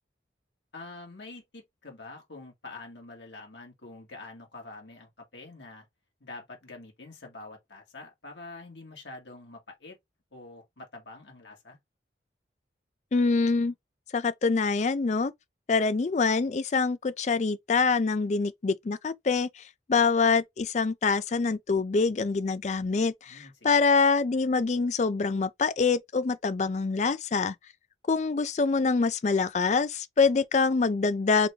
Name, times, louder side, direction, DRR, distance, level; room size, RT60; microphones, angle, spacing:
voice 1, 0.7-5.9 6.2-10.0 10.3-11.8 23.3-23.8, left 3 dB, 80° left, 1.7 m, -46 dB
voice 2, 13.1-13.7 14.1-15.3 15.7-19.6 19.9-27.5 28.1-31.5, left 4 dB, 40° left, 0.4 m, -25 dB
3.8 x 3.4 x 3.2 m
head